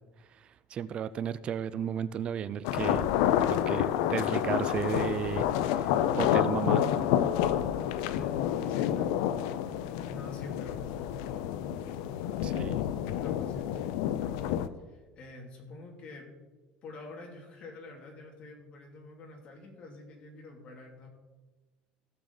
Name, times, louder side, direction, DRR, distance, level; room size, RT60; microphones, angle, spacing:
voice 1, 0.3-3.1 3.5-5.9 6.2-6.8 12.4-12.8, right 8 dB, 35° right, 16 dB, 0.4 m, -34 dB
sound 1, 2.6-14.7, left 10 dB, 85° left, 0.6 m, -29 dB
voice 2, 7.9-9.7 10.0-16.3 16.8-21.1, left 2 dB, 40° left, 0 dB, 2.7 m, -48 dB
16.5 x 6.6 x 4.0 m, 1.2 s
cardioid pair, 140°, 3 cm